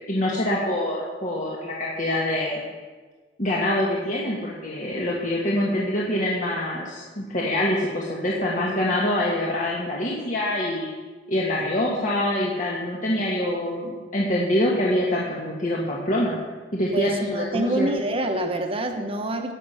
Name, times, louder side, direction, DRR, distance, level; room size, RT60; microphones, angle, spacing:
voice 1, 0.1-2.6 3.4-10.9 11.3-16.4 16.7-17.9, left 1 dB, 45° left, -4 dB, 1.7 m, -25 dB
voice 2, 11.9-12.2 16.9-19.5, right 1 dB, 30° right, 4 dB, 1.1 m, -27 dB
17.5 x 6.8 x 5.7 m, 1.4 s
head